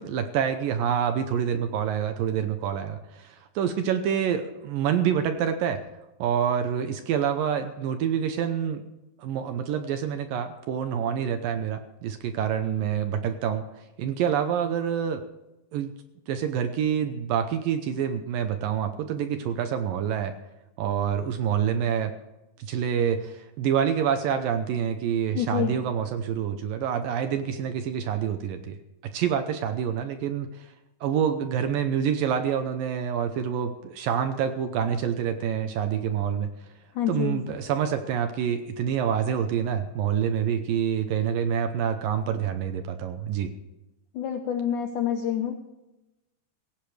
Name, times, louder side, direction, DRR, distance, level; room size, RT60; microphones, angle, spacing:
voice 1, 0.0-5.8 6.2-8.8 9.2-13.6 14.0-15.2 15.7-15.9 16.3-20.4 20.8-22.1 22.6-28.8 29.0-30.7 31.0-36.5 37.1-43.5, right 8 dB, 75° right, 8 dB, 2.2 m, -27 dB
voice 2, 25.3-25.7 36.9-37.4 44.1-45.5, left 9 dB, 80° left, 6 dB, 1.8 m, -27 dB
17.0 x 16.0 x 3.3 m, 0.98 s
omnidirectional pair, 4.8 m